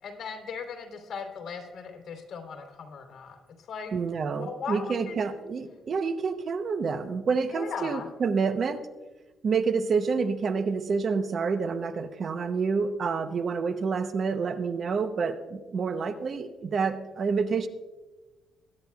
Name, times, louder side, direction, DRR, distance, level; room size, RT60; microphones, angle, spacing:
voice 1, 0.0-3.9 4.3-5.2 7.5-8.1, left 5 dB, 55° left, 4 dB, 2.9 m, -38 dB
voice 2, 3.9-8.9 9.4-17.7, right 5 dB, 50° right, 10 dB, 0.8 m, -28 dB
22.0 x 9.8 x 2.3 m, 1.2 s
cardioid pair, 90°, 0 cm